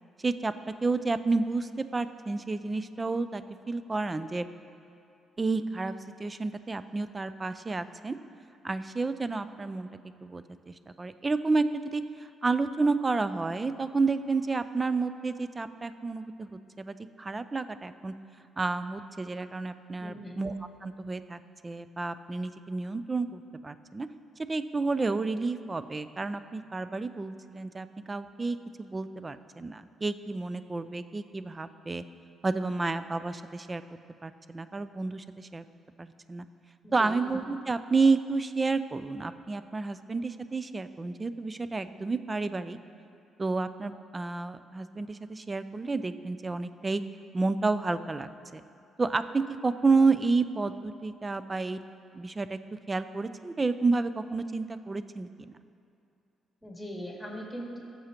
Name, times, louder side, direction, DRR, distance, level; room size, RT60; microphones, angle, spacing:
voice 1, 0.8-3.4 3.7-4.4 5.4-5.9 6.2-8.2 8.6-9.9 10.2-18.1 18.6-20.6 20.8-24.1 24.5-32.0 32.4-33.8 34.2-35.6 36.0-36.5 36.9-42.8 43.4-47.0 47.3-48.6 49.0-51.8 52.1-52.6 52.9-55.5, right 3 dB, 25° right, 12 dB, 0.4 m, -30 dB
voice 2, 20.0-20.4 36.8-37.1 56.6-57.8, equal, 10° left, -3 dB, 2.3 m, -40 dB
15.5 x 6.9 x 2.9 m, 2.5 s
cardioid pair, 90°, 0 cm